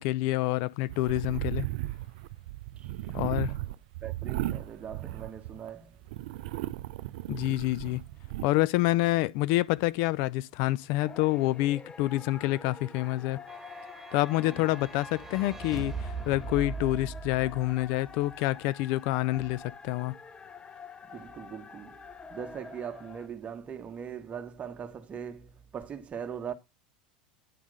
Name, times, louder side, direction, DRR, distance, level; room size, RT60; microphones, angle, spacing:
voice 1, 0.0-1.7 3.1-3.5 7.3-8.0 8.4-13.4 14.1-20.1, left 17 dB, 60° left, 0.5 m, -27 dB
sound 1, 0.9-5.7 6.1-8.5, right 16 dB, 65° right, 0.5 m, -36 dB
voice 2, 2.8-3.6 4.0-6.0 14.4-14.6 21.1-22.0 22.3-26.5, right 7 dB, 30° right, 1.3 m, -41 dB
sound 2, 8.0-10.1 10.5-10.7 10.9-23.3, left 4 dB, 20° left, 1.0 m, -48 dB
sound 3, 13.5-18.1, right 4 dB, 10° right, 1.6 m, -40 dB
10.0 x 3.6 x 6.4 m
hypercardioid pair, 80°, 4 cm